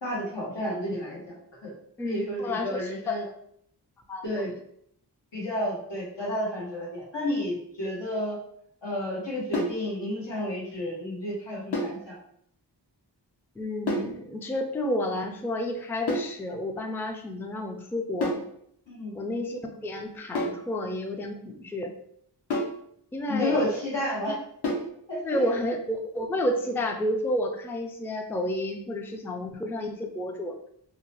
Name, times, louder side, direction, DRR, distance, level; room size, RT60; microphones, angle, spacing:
voice 1, 0.0-1.3 1.6-1.7 2.0-3.2 4.2-4.5 5.3-8.4 8.8-12.2 18.9-19.2 23.3-24.4 25.1-25.5, left 1 dB, 85° left, -5 dB, 1.1 m, -31 dB
voice 2, 2.0-3.2 4.1-4.2 13.6-18.4 19.1-21.9 23.1-23.7 25.2-30.6, left 1 dB, 5° left, 4 dB, 0.3 m, -30 dB
sound 1, 9.5-9.8 11.7-12.0 13.9-14.2 16.1-16.4 18.2-18.5 20.3-20.7 22.5-22.8 24.6-24.9, left 1 dB, 65° left, 0.8 m, -29 dB
2.8 x 2.1 x 2.8 m, 0.68 s
cardioid pair, 45°, 42 cm